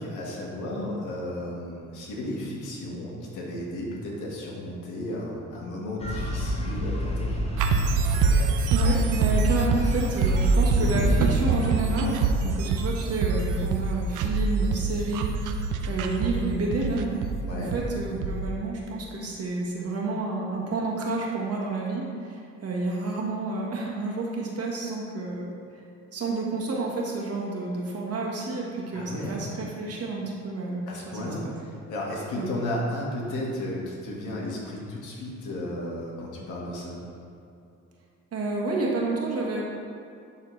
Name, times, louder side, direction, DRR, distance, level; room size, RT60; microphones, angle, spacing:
voice 1, 0.0-7.4 17.5-17.7 28.9-29.4 30.9-37.0, left 1 dB, 80° left, -3 dB, 1.7 m, -34 dB
sound 1, 6.0-12.2, equal, 20° left, 1.1 m, -29 dB
sound 2, 7.6-18.5, right 4 dB, 85° right, 0.6 m, -25 dB
voice 2, 8.7-17.2 17.5-25.5 26.1-31.5 32.4-32.5 38.3-39.6, right 3 dB, 55° right, -2 dB, 1.5 m, -30 dB
11.5 x 4.1 x 3.3 m, 2.5 s
cardioid pair, 90°, 30 cm